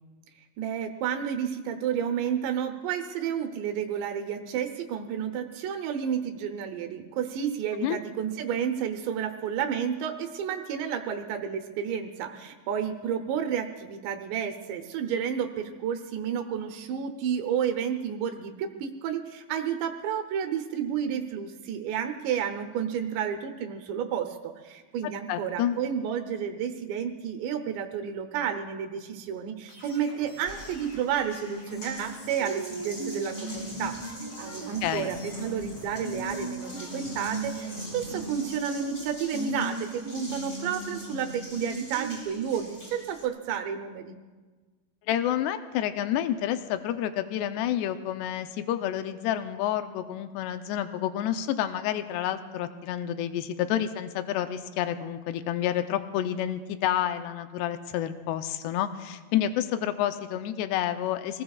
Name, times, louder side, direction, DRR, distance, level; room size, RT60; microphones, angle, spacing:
voice 1, 0.6-44.2, right 8 dB, 75° right, 5 dB, 2.9 m, -31 dB
voice 2, 25.3-25.8 34.8-35.1 45.1-61.4, left 11 dB, 85° left, 9 dB, 2.4 m, -29 dB
sound 1, 29.7-38.5, left 2 dB, 65° left, 5.8 m, -49 dB
Water tap faucet, 30.5-43.3, right 1 dB, 35° left, 1.1 m, -38 dB
26.5 x 19.5 x 2.4 m, 1.3 s
omnidirectional pair, 5.6 m